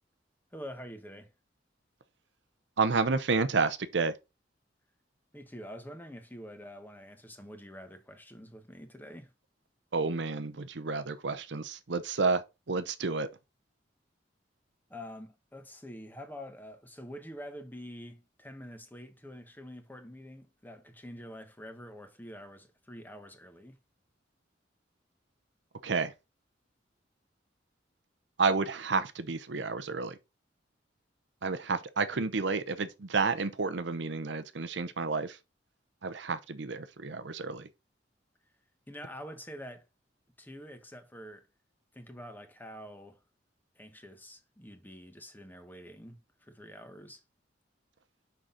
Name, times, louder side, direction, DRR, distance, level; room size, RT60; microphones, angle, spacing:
voice 1, 0.5-1.3 5.3-9.3 14.9-23.8 38.9-39.9 40.4-41.5 41.9-43.2 43.7-47.2, equal, 10° left, 1.2 m, -46 dB
voice 2, 2.8-4.1 9.9-12.4 12.7-13.3 25.8-26.1 28.4-30.2 31.4-35.4 36.0-37.7, right 4 dB, 65° right, 0.8 m, -30 dB
6.3 x 5.8 x 3.9 m
head